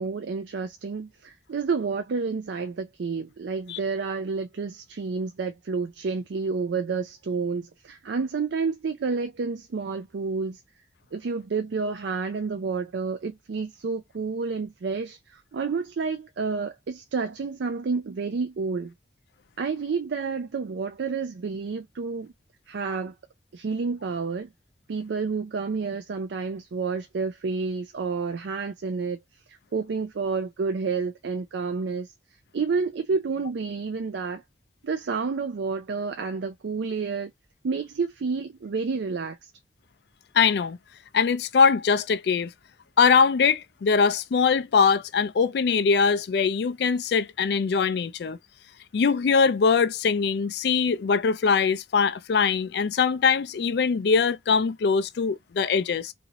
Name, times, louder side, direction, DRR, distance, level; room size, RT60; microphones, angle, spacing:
voice 1, 0.0-10.6 11.1-18.9 19.6-22.3 22.7-23.1 23.5-24.5 24.9-29.2 29.5-32.1 32.5-34.4 34.8-37.3 37.6-39.5, right 4 dB, 70° right, 0.4 m, -29 dB
voice 2, 40.3-40.8 41.1-42.5 43.0-48.4 48.9-56.1, left 5 dB, 60° left, 0.3 m, -22 dB
2.8 x 2.6 x 3.9 m
head